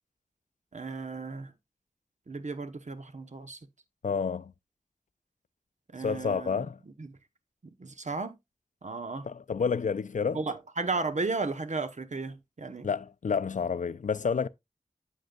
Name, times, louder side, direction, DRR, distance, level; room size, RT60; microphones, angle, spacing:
voice 1, 0.7-1.5 2.3-3.6 5.9-6.6 7.0-7.1 7.8-8.4 8.8-9.3 10.3-12.9, right 3 dB, 65° right, 0.9 m, -34 dB
voice 2, 4.0-4.5 6.0-6.8 9.2-10.4 12.8-14.5, left 6 dB, 75° left, 0.4 m, -29 dB
8.5 x 7.8 x 2.3 m
wide cardioid pair, 50°, 13 cm